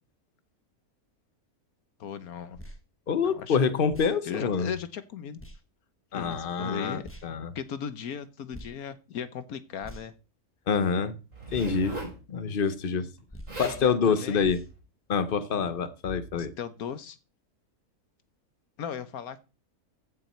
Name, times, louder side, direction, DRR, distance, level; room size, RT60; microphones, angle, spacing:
voice 1, 2.0-2.6 3.2-3.6 4.2-5.4 6.1-7.1 7.5-10.1 13.6-14.5 16.3-17.2 18.8-19.4, left 7 dB, 75° left, 1.4 m, -37 dB
sound 1, 2.5-2.8 3.9-4.2 5.4-5.6 7.0-7.3 8.5-8.7 9.8-10.2 11.5-11.7 13.3-13.6 14.4-14.7, equal, 10° left, 1.1 m, -44 dB
voice 2, 3.1-4.7 6.1-7.5 10.7-11.2 11.5-12.0 12.3-13.1 13.6-14.6 15.1-16.5, left 6 dB, 40° left, 1.0 m, -26 dB
Zipper (clothing), 11.3-12.2 13.2-13.3 13.5-13.8 14.6-14.8, right 2 dB, 55° right, 4.9 m, -38 dB
15.0 x 6.2 x 4.4 m
omnidirectional pair, 1.6 m